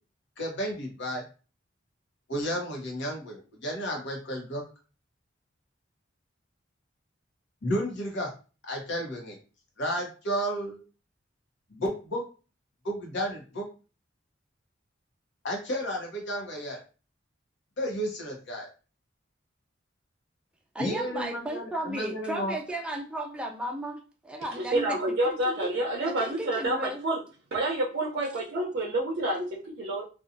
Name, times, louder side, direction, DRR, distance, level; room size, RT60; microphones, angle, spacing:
voice 1, 0.4-1.3 2.3-4.6 7.6-8.3 8.6-9.4 9.8-10.8 11.7-12.2 12.8-13.7 15.4-16.8 17.8-18.7 20.8-22.6, equal, 65° left, 0 dB, 0.9 m, -32 dB
voice 2, 20.7-25.7 26.0-27.0, right 1 dB, 5° right, 1 dB, 0.4 m, -35 dB
voice 3, 24.6-27.2 27.5-30.0, right 1 dB, 55° right, -3 dB, 0.6 m, -28 dB
2.7 x 2.3 x 2.5 m, 0.35 s
head